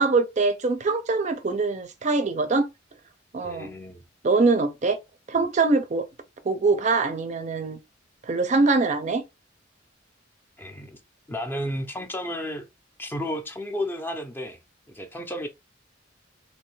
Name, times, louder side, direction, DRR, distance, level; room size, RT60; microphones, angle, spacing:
voice 1, 0.0-2.7 3.3-3.7 4.2-5.0 5.3-6.0 6.5-7.8 8.2-9.2, right 3 dB, 40° right, 0.5 m, -23 dB
voice 2, 3.4-4.0 10.6-11.0 11.3-12.7 13.0-14.6 14.9-15.5, equal, 10° left, 0.5 m, -32 dB
3.2 x 2.6 x 3.1 m
head